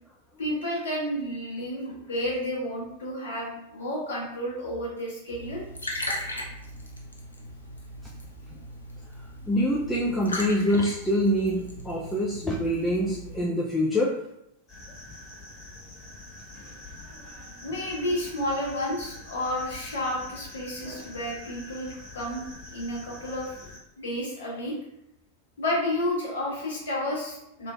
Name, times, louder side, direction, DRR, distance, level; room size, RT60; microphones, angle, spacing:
voice 1, 0.4-5.7 17.6-22.4 22.7-23.5 24.0-24.8 25.6-27.7, left 1 dB, 60° left, -3 dB, 1.0 m, -31 dB
Liquid, 5.3-13.4, left 1 dB, 80° left, 0.5 m, -38 dB
voice 2, 9.4-14.1, equal, 5° left, -4 dB, 0.3 m, -25 dB
sound 1, 14.7-23.8, left 2 dB, 30° left, 1.3 m, -45 dB
3.0 x 2.4 x 2.3 m, 0.80 s
figure-of-eight pair, 90°, 0 cm